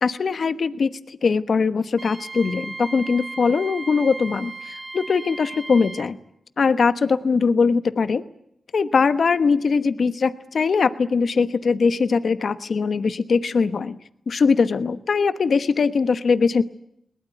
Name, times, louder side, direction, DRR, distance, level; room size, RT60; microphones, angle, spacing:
voice 1, 0.0-6.2 6.6-8.2 8.7-14.0 14.3-16.6, left 5 dB, 65° left, 12 dB, 1.1 m, -21 dB
Wind instrument woodwind instrument, 2.0-6.1, right 3 dB, 35° right, 2.8 m, -36 dB
22.0 x 20.0 x 9.1 m, 0.73 s
cardioid pair, 60°, 0 cm